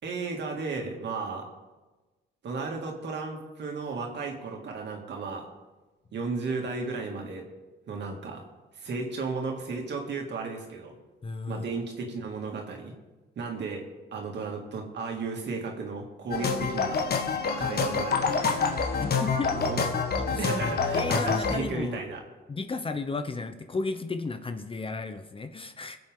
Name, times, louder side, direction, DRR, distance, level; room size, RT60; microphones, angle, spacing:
voice 1, 0.0-1.5 2.4-5.5 6.1-7.5 7.9-8.4 8.7-11.0 11.5-12.9 13.4-13.8 14.1-17.0 17.5-19.0 19.5-19.9 20.4-22.2, right 4 dB, 60° right, 1 dB, 2.6 m, -34 dB
voice 2, 11.2-11.7 19.0-19.7 20.2-20.5 20.9-22.0 22.5-26.0, left 3 dB, 25° left, 8 dB, 0.9 m, -34 dB
sound 1, 16.3-21.6, left 5 dB, 50° left, 1.5 m, -27 dB
22.0 x 7.7 x 3.8 m, 1.2 s
cardioid pair, 90°, 20 cm